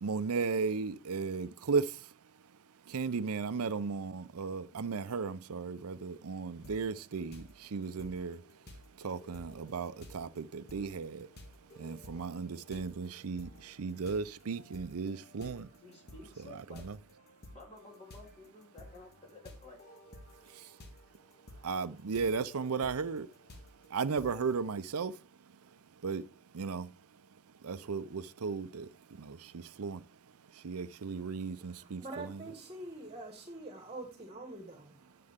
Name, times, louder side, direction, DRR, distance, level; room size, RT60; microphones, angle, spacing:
voice 1, 0.0-2.1 2.9-8.4 9.0-11.3 11.8-15.7 16.5-17.0 20.5-20.7 21.6-23.3 23.9-25.2 26.0-26.3 26.5-26.9 27.6-30.0 30.5-32.4, right 5 dB, 85° right, 0.6 m, -35 dB
sound 1, 6.6-7.0 7.3-24.7, left 1 dB, 45° left, 1.7 m, -54 dB
voice 2, 15.8-16.9 17.5-19.8, left 2 dB, 30° left, 3.5 m, -53 dB
voice 3, 31.4-35.2, right 2 dB, 25° right, 1.7 m, -46 dB
9.7 x 7.6 x 3.6 m
head